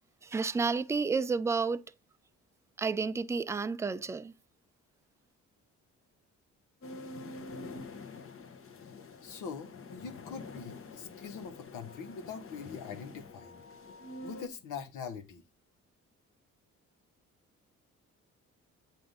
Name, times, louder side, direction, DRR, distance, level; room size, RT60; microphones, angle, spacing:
voice 1, 0.2-1.8 2.8-4.3, right 4 dB, 10° right, 0.3 m, -31 dB
sound 1, 6.8-14.5, left 3 dB, 45° left, 0.9 m, -46 dB
voice 2, 9.2-13.6 14.2-15.4, left 6 dB, 85° left, 1.2 m, -43 dB
7.7 x 2.7 x 5.2 m
cardioid pair, 90°, 30 cm